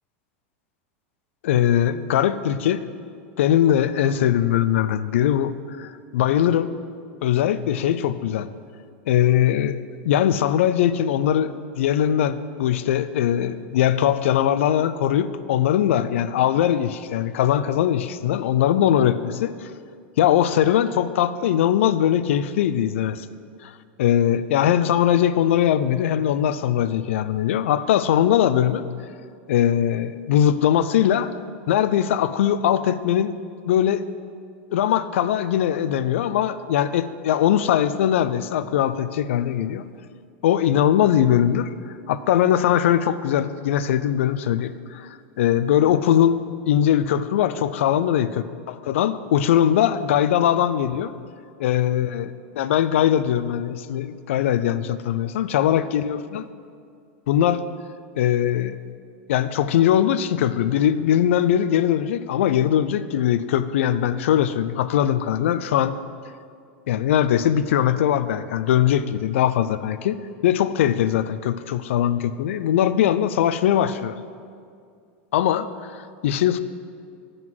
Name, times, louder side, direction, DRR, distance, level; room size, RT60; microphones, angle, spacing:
voice 1, 1.4-2.8 3.4-6.7 7.2-8.5 9.1-9.8 10.0-19.7 20.2-23.3 23.6-23.7 24.0-28.8 29.5-31.3 31.7-33.3 33.6-34.0 34.7-39.8 40.4-41.7 42.1-46.4 46.7-48.3 48.9-51.1 51.6-56.4 57.3-57.6 58.2-58.8 59.3-66.0 66.9-74.2 75.3-76.6, left 10 dB, 85° left, 14 dB, 0.4 m, -21 dB
9.1 x 3.8 x 6.1 m, 2.2 s
supercardioid pair, 135°, 7 cm